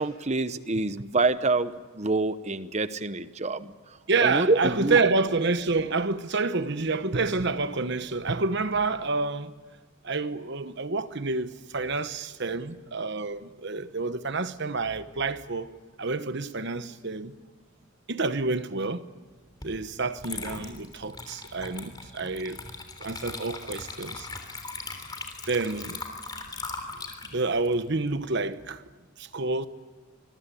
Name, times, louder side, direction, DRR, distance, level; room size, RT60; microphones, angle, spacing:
voice 1, 0.0-3.7 4.2-5.0, right 3 dB, 30° right, 0.9 m, -26 dB
voice 2, 4.1-9.5 10.0-15.7 16.0-17.3 18.1-19.1 19.6-22.6 23.0-24.3 25.5-26.0 27.3-28.8 29.2-29.7, right 3 dB, 50° right, 1.1 m, -28 dB
Water / Liquid, 19.6-19.8 20.2-28.7, left 3 dB, 20° left, 3.3 m, -39 dB
26.0 x 22.0 x 8.6 m
head